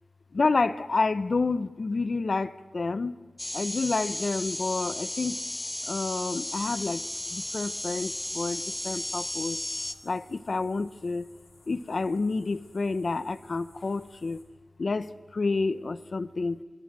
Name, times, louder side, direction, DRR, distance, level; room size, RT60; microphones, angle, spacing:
voice 1, 0.3-3.2 3.5-5.4 5.9-7.0 7.3-9.6 10.0-11.2 11.7-14.4 14.8-16.6, left 3 dB, 65° left, 14 dB, 0.9 m, -29 dB
sound 1, 3.4-9.9, left 1 dB, 25° left, 1.4 m, -34 dB
sound 2, 6.5-14.4, left 2 dB, 90° left, 5.2 m, -58 dB
28.0 x 21.5 x 7.6 m, 1.4 s
wide cardioid pair, 65°, 0 cm